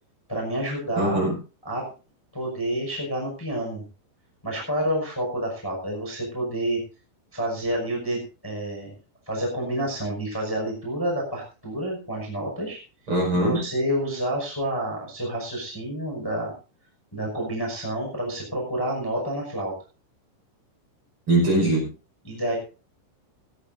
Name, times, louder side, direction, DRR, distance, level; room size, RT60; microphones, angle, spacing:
voice 1, 0.3-1.2 1.6-1.8 2.3-3.8 4.4-6.8 7.3-8.9 9.2-12.8 13.3-16.5 17.1-19.7 22.2-22.6, right 1 dB, 5° left, -1 dB, 5.1 m, -29 dB
voice 2, 1.0-1.3 13.1-13.6 21.3-21.9, right 1 dB, 25° right, -1 dB, 6.0 m, -21 dB
19.0 x 14.5 x 2.7 m, 0.33 s
omnidirectional pair, 5.9 m